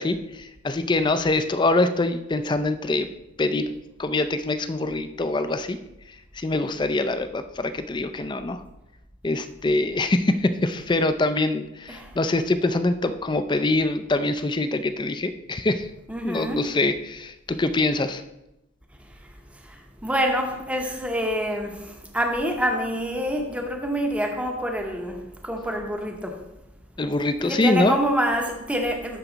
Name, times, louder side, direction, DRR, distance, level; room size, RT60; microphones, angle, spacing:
voice 1, 0.0-3.1 3.4-5.8 6.3-8.6 9.2-15.9 16.2-18.2 27.0-28.0, left 2 dB, 20° left, 0.4 m, -24 dB
voice 2, 16.1-16.7 20.0-26.4 27.4-29.2, equal, 5° right, 0.8 m, -26 dB
12.0 x 4.6 x 3.9 m
head